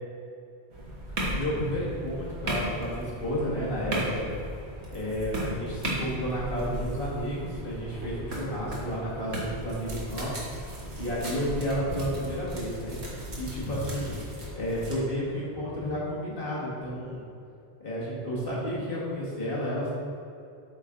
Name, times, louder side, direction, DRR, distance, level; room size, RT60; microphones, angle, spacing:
sound 1, 0.7-15.0, right 1 dB, 80° right, 1.7 m, -36 dB
voice 1, 1.3-4.3 4.9-10.4 11.0-13.0 13.4-14.2 14.5-17.2 17.8-19.9, equal, 55° left, -7 dB, 2.1 m, -31 dB
8.4 x 5.4 x 3.8 m, 2.5 s
omnidirectional pair, 1.1 m